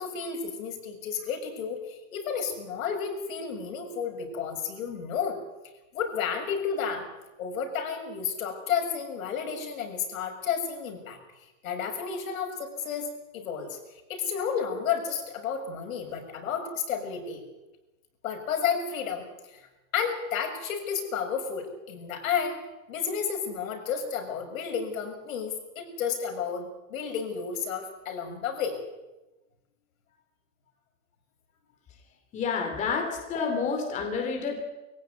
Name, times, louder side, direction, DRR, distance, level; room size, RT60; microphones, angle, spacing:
voice 1, 0.0-5.4 5.9-7.1 7.4-11.2 11.6-13.8 14.1-17.4 18.2-19.7 19.9-22.6 22.9-28.8 33.0-33.1, left 7 dB, 75° left, 3 dB, 6.8 m, -32 dB
voice 2, 32.3-34.6, left 5 dB, 15° left, 4 dB, 2.8 m, -29 dB
24.0 x 16.5 x 9.5 m, 1.0 s
supercardioid pair, 175°, 41 cm